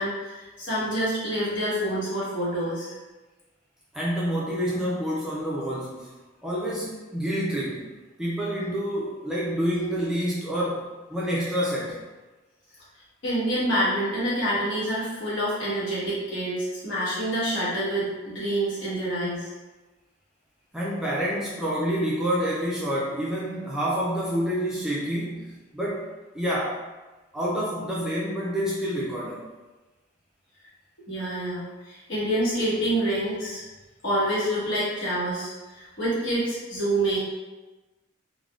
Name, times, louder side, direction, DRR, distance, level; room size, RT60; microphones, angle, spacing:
voice 1, 0.0-2.9 13.2-19.5 31.1-33.6 34.0-37.2, right 1 dB, 70° left, -8 dB, 1.2 m, -27 dB
voice 2, 3.9-6.1 6.4-7.9 8.2-12.0 20.7-26.1 26.3-26.8 27.3-29.4, equal, 5° right, -6 dB, 0.3 m, -28 dB
3.4 x 2.0 x 2.3 m, 1.2 s
head